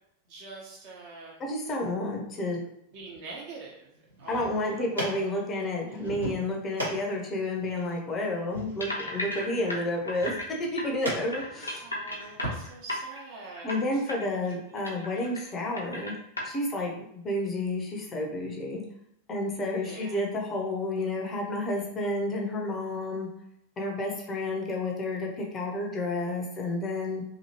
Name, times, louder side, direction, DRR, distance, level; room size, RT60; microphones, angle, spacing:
voice 1, 0.3-1.4 2.9-5.3 11.8-14.0 14.4-14.5 14.8-15.2 19.8-20.2, right 3 dB, 45° right, -3 dB, 1.0 m, -45 dB
voice 2, 1.4-2.6 4.3-10.3 10.6-11.9 13.6-16.1 16.4-18.8 19.3-23.3 23.8-27.2, left 1 dB, 25° left, 0 dB, 0.6 m, -31 dB
sound 1, 4.1-12.6, equal, 80° right, 1.1 m, -39 dB
sound 2, 8.8-10.5 10.8-10.9 11.3-13.2 13.6-13.8 14.1-14.2 14.5-15.5 15.8-16.4, left 1 dB, 80° left, 0.6 m, -35 dB
2.8 x 2.7 x 2.8 m, 0.76 s
figure-of-eight pair, 90°, 0 cm